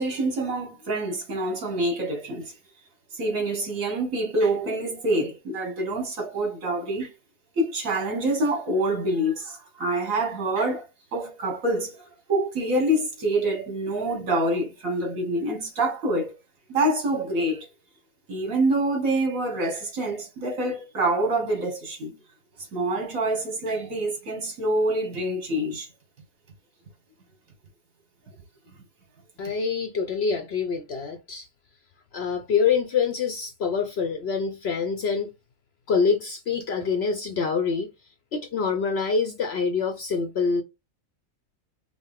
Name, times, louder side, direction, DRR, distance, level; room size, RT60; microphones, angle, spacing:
voice 1, 0.0-2.5 3.1-7.1 7.6-16.3 16.7-17.7 18.3-22.2 22.7-25.9, right 1 dB, 70° right, 1.9 m, -26 dB
voice 2, 29.4-31.5 32.1-35.3 35.9-37.9 38.3-40.6, left 5 dB, 60° left, 0.7 m, -25 dB
5.1 x 2.0 x 3.5 m
omnidirectional pair, 1.5 m